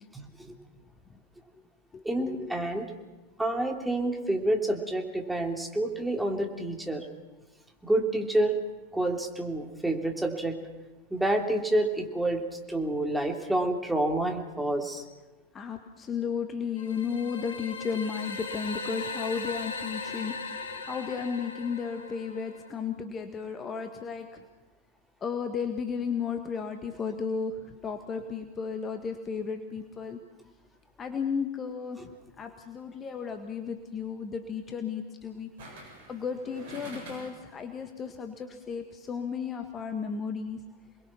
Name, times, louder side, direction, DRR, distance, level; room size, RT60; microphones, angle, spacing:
voice 1, 0.1-0.5 2.0-2.9 3.4-7.0 7.8-8.5 8.9-10.5 11.1-15.0, right 1 dB, 5° right, 2 dB, 3.2 m, -28 dB
voice 2, 1.9-2.5 15.5-24.5 25.2-30.2 31.0-35.5 36.1-40.6, left 6 dB, 20° left, 6 dB, 1.7 m, -34 dB
sound 1, 16.8-22.7, left 4 dB, 65° left, 3.0 m, -38 dB
sound 2, 32.9-33.2 35.6-37.5 37.9-38.0, right 2 dB, 55° right, 7.5 m, -46 dB
28.5 x 21.0 x 6.0 m, 1.1 s
figure-of-eight pair, 90°, 0 cm